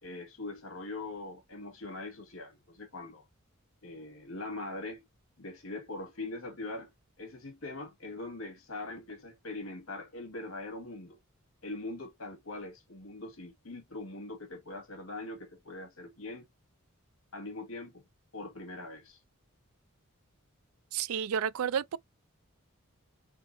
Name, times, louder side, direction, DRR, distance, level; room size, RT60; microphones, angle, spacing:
voice 1, 0.0-3.3 3.8-5.0 5.4-6.9 7.2-11.2 11.6-16.5 17.3-18.0 18.3-19.2, left 2 dB, 65° left, 1.9 m, -42 dB
voice 2, 20.9-22.0, right 8 dB, 80° right, 0.4 m, -31 dB
4.5 x 4.0 x 2.7 m
head